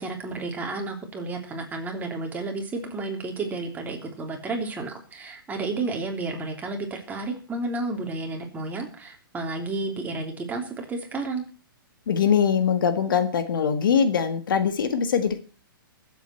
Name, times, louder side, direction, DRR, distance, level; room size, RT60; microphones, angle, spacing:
voice 1, 0.0-11.4, right 3 dB, 15° right, 1 dB, 3.3 m, -31 dB
voice 2, 12.1-15.4, left 7 dB, 65° left, 9 dB, 1.7 m, -22 dB
23.0 x 8.1 x 4.5 m, 0.37 s
hypercardioid pair, 125°, 12 cm